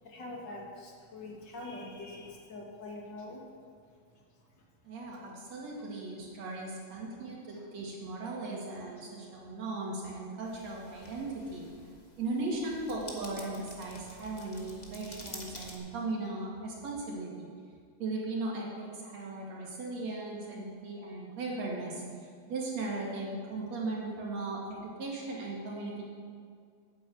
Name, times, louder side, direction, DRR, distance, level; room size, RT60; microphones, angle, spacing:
voice 1, 0.0-3.4 4.1-4.2 4.5-4.7 7.1-7.6, left 2 dB, 40° left, -1 dB, 2.2 m, -45 dB
voice 2, 4.8-11.6 12.2-17.5 18.0-22.0 22.5-26.0, right 2 dB, 65° right, -4 dB, 3.4 m, -37 dB
sound 1, 10.4-15.8, left 2 dB, 65° left, 0.4 m, -49 dB
9.8 x 8.3 x 7.7 m, 2.1 s
omnidirectional pair, 3.4 m